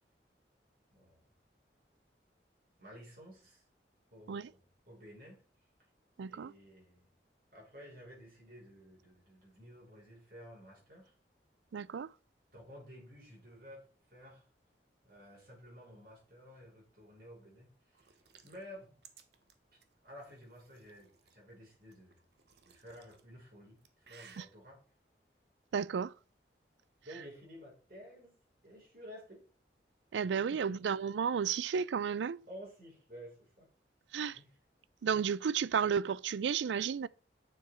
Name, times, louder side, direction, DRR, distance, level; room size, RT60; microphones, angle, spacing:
voice 1, 0.9-1.2 2.8-3.6 4.1-5.4 6.2-7.1 7.5-11.1 12.5-14.5 15.0-19.0 20.0-22.2 22.6-24.8 27.0-28.3 28.6-29.4 30.5-30.8 32.5-33.7 34.3-34.5, equal, 50° right, 5.9 m, -53 dB
voice 2, 6.2-6.5 11.7-12.1 24.4-24.5 25.7-26.1 30.1-32.4 34.1-34.4 35.0-37.1, right 7 dB, 85° right, 0.4 m, -32 dB
sound 1, 17.9-21.4 21.9-23.2 23.6-24.4, right 7 dB, 70° right, 1.1 m, -60 dB
9.3 x 7.0 x 4.5 m
head